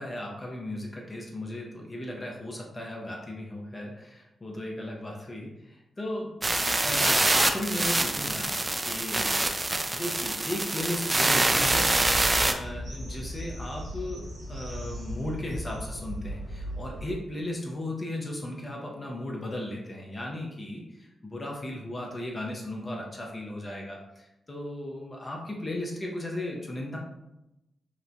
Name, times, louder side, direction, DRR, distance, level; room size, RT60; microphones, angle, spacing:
voice 1, 0.0-6.4 6.8-9.3 9.9-11.9 12.4-27.0, left 1 dB, 35° left, -1 dB, 0.6 m, -36 dB
sound 1, 6.4-12.5, right 2 dB, 30° right, 0.3 m, -25 dB
sound 2, 11.6-17.2, equal, 80° right, 0.9 m, -37 dB
2.9 x 2.1 x 2.5 m, 0.90 s
supercardioid pair, 50°, 0 cm